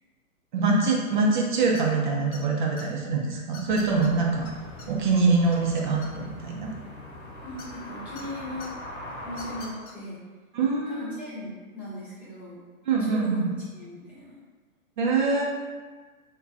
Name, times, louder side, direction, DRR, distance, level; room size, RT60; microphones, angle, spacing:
voice 1, 0.5-4.5 4.9-6.7 10.5-11.1 12.9-13.5 15.0-15.4, right 3 dB, 35° right, -1 dB, 0.4 m, -24 dB
sound 1, 1.7-2.0 2.3-2.8 3.5-4.1 4.4-4.5 4.8-4.9 5.2-6.4 7.6-8.2 8.6-8.7 9.3-9.9, left 4 dB, 75° left, 0.7 m, -45 dB
sound 2, 3.7-9.7, left 1 dB, 35° left, 0.8 m, -41 dB
voice 2, 7.4-8.7 9.2-10.2 10.9-12.6 13.0-14.4, left 1 dB, 5° right, -11 dB, 0.8 m, -38 dB
2.4 x 2.2 x 3.8 m, 1.4 s
figure-of-eight pair, 120°, 43 cm